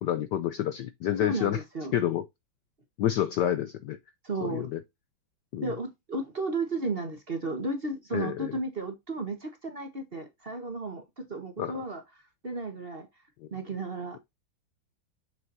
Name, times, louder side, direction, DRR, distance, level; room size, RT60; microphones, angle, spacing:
voice 1, 0.0-1.6 1.9-2.2 3.0-4.0 4.4-4.8 5.5-5.7 8.1-8.5 11.6-11.7, left 11 dB, 70° left, 1.0 m, -28 dB
voice 2, 1.2-1.9 4.2-4.7 5.6-12.0 12.4-13.1 13.5-14.2, right 3 dB, 30° right, 1.3 m, -34 dB
7.1 x 6.0 x 2.7 m
omnidirectional pair, 2.3 m